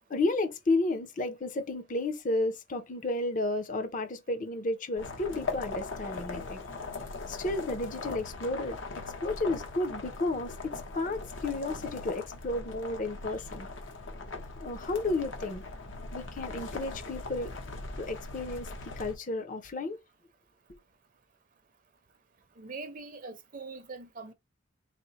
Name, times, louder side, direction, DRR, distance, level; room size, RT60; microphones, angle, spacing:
voice 1, 0.1-6.6 7.3-13.7 14.6-15.6 16.1-17.5 18.0-20.0, left 2 dB, 45° left, 0.7 m, -32 dB
sound 1, 5.0-19.1, left 3 dB, 75° left, 0.9 m, -40 dB
voice 2, 22.6-24.3, right 3 dB, 45° right, 0.6 m, -42 dB
4.2 x 2.1 x 4.0 m
head